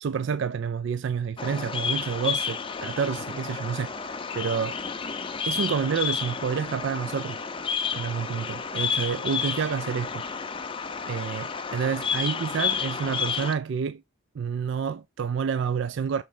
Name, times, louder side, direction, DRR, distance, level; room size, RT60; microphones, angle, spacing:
voice 1, 0.0-4.8 5.4-7.4 7.9-10.2 11.1-14.0 14.4-16.2, right 6 dB, 55° right, 0.3 m, -29 dB
Bird vocalization bird call bird song, 1.4-13.5, left 6 dB, 25° left, 0.5 m, -31 dB
6.3 x 4.3 x 3.8 m
head